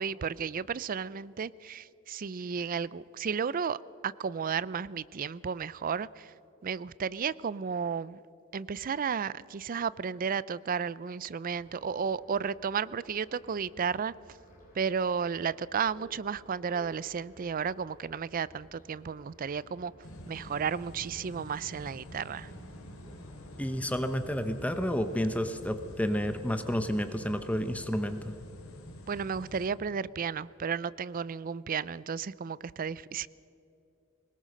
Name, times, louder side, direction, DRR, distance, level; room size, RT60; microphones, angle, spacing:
voice 1, 0.0-6.3 6.6-8.2 8.5-14.1 14.7-19.9 20.3-22.5 29.1-33.3, right 6 dB, 40° right, 0.4 m, -33 dB
sound 1, 11.5-27.5, equal, 40° left, 5.7 m, -56 dB
sound 2, 20.0-29.7, equal, 80° left, 2.9 m, -47 dB
voice 2, 23.6-28.3, equal, 5° left, 0.8 m, -30 dB
22.0 x 20.0 x 6.5 m
head